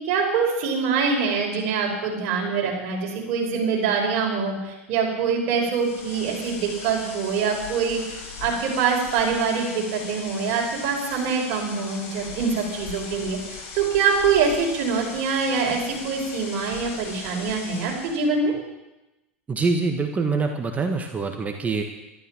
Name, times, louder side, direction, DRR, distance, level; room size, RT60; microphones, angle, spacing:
voice 1, 0.0-8.0 8.4-18.5, right 5 dB, 55° right, 0 dB, 5.3 m, -24 dB
sound 1, 5.7-18.2, left 4 dB, 45° left, 6.4 m, -39 dB
voice 2, 19.5-21.8, right 4 dB, 20° right, 4 dB, 1.5 m, -25 dB
13.0 x 12.5 x 7.5 m, 1.0 s
hypercardioid pair, 90°, 7 cm